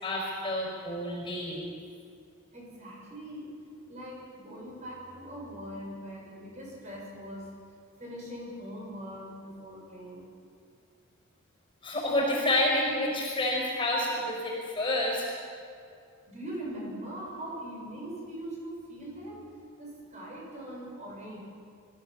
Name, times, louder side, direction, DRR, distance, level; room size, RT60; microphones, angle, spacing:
voice 1, 0.0-1.7 11.8-15.2, left 1 dB, 25° left, -2 dB, 5.0 m, -29 dB
voice 2, 2.5-3.6 3.9-7.5 8.0-10.3 16.3-19.4 19.8-21.4, right 1 dB, 35° right, -3 dB, 6.5 m, -41 dB
24.5 x 15.0 x 7.4 m, 2.3 s
head